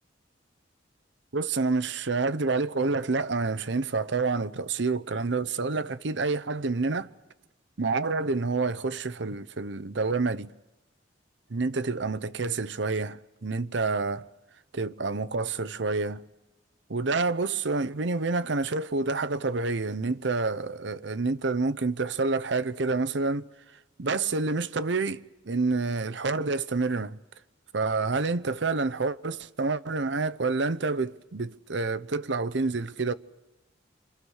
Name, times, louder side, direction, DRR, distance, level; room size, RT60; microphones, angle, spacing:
voice 1, 1.3-7.1 7.8-10.5 11.5-14.3 14.7-16.2 16.9-23.5 24.0-27.2 27.7-33.1, right 3 dB, 70° right, 0.8 m, -28 dB
28.5 x 25.5 x 6.4 m
head